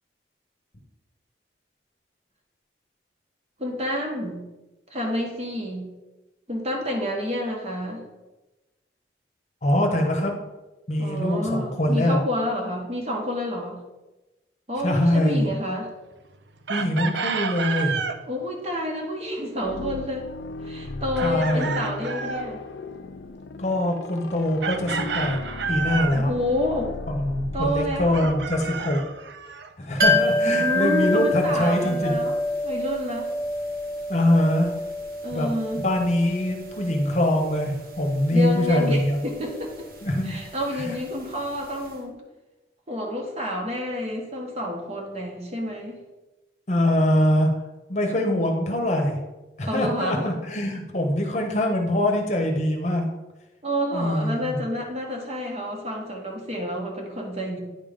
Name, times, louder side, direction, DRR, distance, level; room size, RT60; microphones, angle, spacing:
voice 1, 3.6-4.4 4.9-5.9 6.5-8.0 11.0-13.8 14.7-15.9 18.3-20.3 20.6-22.6 26.2-26.9 27.5-28.3 30.5-32.3 32.6-33.3 35.2-35.8 38.3-39.9 40.2-42.2 42.9-46.0 49.6-50.2 53.6-57.6, left 1 dB, 35° right, 0 dB, 1.4 m, -29 dB
voice 2, 9.6-10.4 10.9-12.2 14.8-15.5 16.7-18.0 21.2-21.8 23.6-25.4 25.7-26.3 27.1-29.0 29.8-32.2 34.1-34.7 35.3-35.5 35.8-39.2 40.0-40.3 40.8-40.9 46.7-47.5 47.9-49.2 49.6-53.1 53.9-54.6, left 1 dB, 40° left, 3 dB, 1.0 m, -23 dB
Chicken rooster, 16.7-18.2 21.2-22.5 24.6-26.2 28.1-29.7, right 5 dB, 80° right, 0.5 m, -30 dB
sound 1, 19.6-29.3, left 3 dB, 75° left, 0.4 m, -37 dB
sound 2, 30.0-41.6 41.9-42.0, left 1 dB, 55° right, 1.1 m, -28 dB
9.6 x 3.7 x 5.1 m, 1.1 s
head